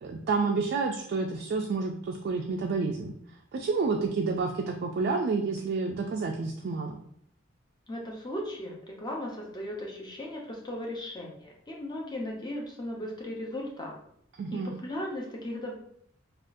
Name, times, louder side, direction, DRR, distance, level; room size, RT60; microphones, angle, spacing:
voice 1, 0.0-3.1 3.5-7.0 14.4-14.7, right 4 dB, 50° right, 1 dB, 0.3 m, -29 dB
voice 2, 7.9-13.9 14.5-15.7, left 1 dB, 20° left, -1 dB, 0.6 m, -37 dB
3.5 x 2.4 x 2.6 m, 0.69 s
head